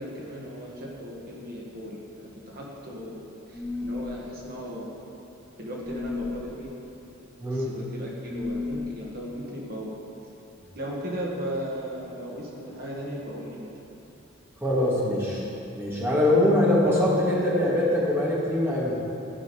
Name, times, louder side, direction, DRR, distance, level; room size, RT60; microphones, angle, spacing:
voice 1, 0.0-3.2 3.5-4.9 5.6-6.7 7.5-9.9 10.7-13.7, equal, 50° right, -4 dB, 1.8 m, -36 dB
sound 1, 3.5-4.2 5.8-6.4 8.3-9.0, left 3 dB, 5° left, 0.8 m, -32 dB
voice 2, 14.6-15.4 15.7-19.0, left 1 dB, 10° right, -6 dB, 2.3 m, -23 dB
14.5 x 6.3 x 6.9 m, 3.0 s
head